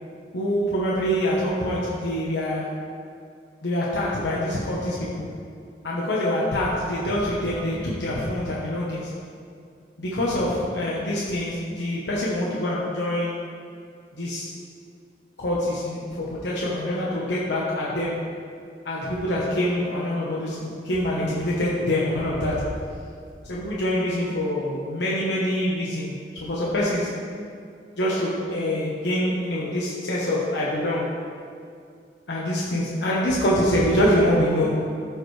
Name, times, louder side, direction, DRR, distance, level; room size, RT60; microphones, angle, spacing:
voice 1, 0.3-2.7 3.6-5.3 5.8-9.1 10.0-13.3 14.2-14.5 15.4-18.2 18.8-22.7 23.5-27.1 28.0-31.1 32.3-34.9, left 1 dB, 85° left, -6 dB, 1.2 m, -25 dB
14.0 x 5.0 x 3.3 m, 2.3 s
head